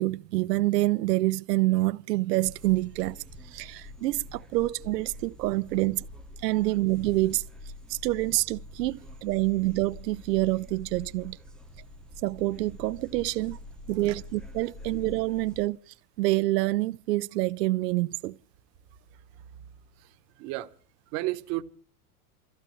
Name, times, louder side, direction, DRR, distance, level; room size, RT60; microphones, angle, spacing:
voice 1, 0.0-6.1 6.4-7.4 7.9-11.4 12.2-13.6 13.9-18.4, right 18 dB, 85° right, 0.7 m, -27 dB
sound 1, 2.4-15.7, left 1 dB, ahead, 0.8 m, -46 dB
voice 2, 19.1-19.7 20.0-20.7 21.1-21.6, right 18 dB, 35° right, 1.0 m, -35 dB
29.0 x 15.0 x 3.1 m
supercardioid pair, 160°, 47 cm